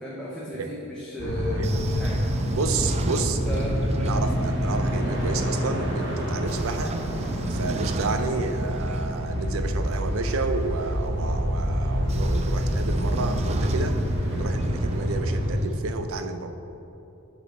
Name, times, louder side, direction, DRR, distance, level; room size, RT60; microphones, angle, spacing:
voice 1, 0.0-2.2 3.5-3.8, left 1 dB, 5° left, -7 dB, 0.9 m, -34 dB
sound 1, 1.2-15.6, equal, 60° right, 1.6 m, -27 dB
Train / Sliding door, 1.4-5.4 6.2-11.1 11.9-15.8, right 2 dB, 30° right, 0.3 m, -34 dB
voice 2, 2.5-3.6 4.0-7.0 7.5-14.0 14.3-16.5, right 3 dB, 85° right, 8 dB, 0.6 m, -30 dB
7.3 x 6.2 x 4.1 m, 2.9 s
head